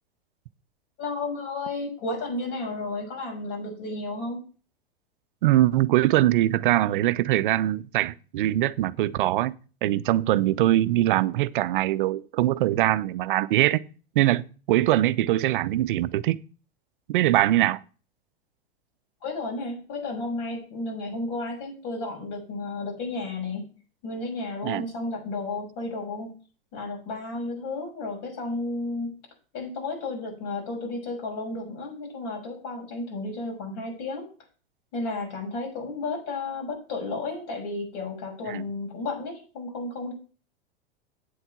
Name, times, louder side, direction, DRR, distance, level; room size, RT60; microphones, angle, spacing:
voice 1, 1.0-4.4 19.2-23.7 24.0-26.3 26.7-29.2 29.5-34.3 34.9-40.1, left 2 dB, 50° left, 6.2 m, -32 dB
voice 2, 5.4-9.5 9.8-13.8 14.2-16.4 17.1-17.8 24.6-24.8 38.5-38.6, right 14 dB, 60° right, 0.7 m, -22 dB
8.8 x 7.9 x 5.9 m
hypercardioid pair, 95°, 29 cm